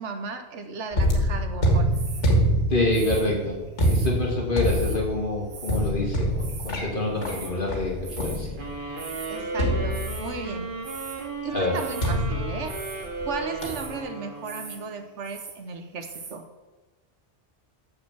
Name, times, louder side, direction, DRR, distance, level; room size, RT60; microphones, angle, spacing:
voice 1, 0.0-1.9 9.3-10.7 11.4-12.8 13.2-16.4, right 4 dB, 85° right, 7 dB, 1.3 m, -35 dB
sound 1, 0.9-8.9 9.6-10.6 12.0-13.3 13.6-14.0, equal, 80° left, 2.0 m, -26 dB
sound 2, 1.9-2.4 2.9-4.1 4.6-5.0 5.5-5.9 6.2-6.8 7.2-7.6 8.0-8.5 8.8-9.4 9.9-10.3 10.8-11.3 11.7-12.2 12.6-13.1 13.6-14.0 14.4-14.8 15.1-15.6 16.0-16.4, right 5 dB, 65° right, 1.3 m, -41 dB
voice 2, 2.7-3.6 3.9-8.5 11.5-11.8, left 2 dB, 45° left, -2 dB, 2.2 m, -26 dB
sound 3, 8.6-15.0, right 3 dB, 50° right, 1.8 m, -35 dB
6.7 x 6.7 x 7.3 m, 1.1 s
omnidirectional pair, 1.2 m